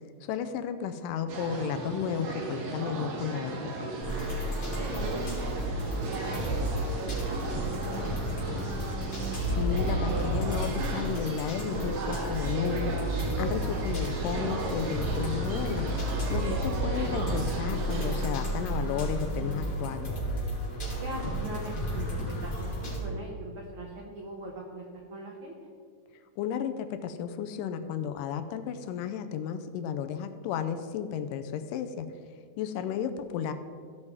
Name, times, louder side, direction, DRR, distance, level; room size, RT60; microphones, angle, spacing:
voice 1, 0.2-3.9 9.5-13.0 13.4-20.2 26.4-32.1 32.6-33.5, left 8 dB, 85° left, 10 dB, 2.2 m, -33 dB
sound 1, 1.3-18.3, right 3 dB, 60° right, 2.2 m, -36 dB
sound 2, 4.0-23.0, equal, 25° left, 2.5 m, -32 dB
voice 2, 4.7-9.0 16.5-17.0 21.0-25.5 32.7-32.8, right 2 dB, 80° right, -1 dB, 1.2 m, -42 dB
15.5 x 5.4 x 4.7 m, 2.1 s
omnidirectional pair, 3.9 m